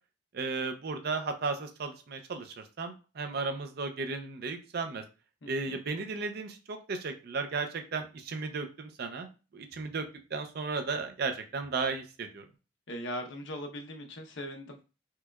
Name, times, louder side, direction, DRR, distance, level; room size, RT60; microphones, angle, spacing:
voice 1, 0.3-5.0 5.5-9.3 9.5-10.1 10.3-12.4, right 4 dB, 60° right, 7 dB, 0.5 m, -35 dB
voice 2, 5.4-5.8 12.9-14.8, equal, 85° left, 4 dB, 0.7 m, -40 dB
4.5 x 2.3 x 2.3 m, 0.33 s
head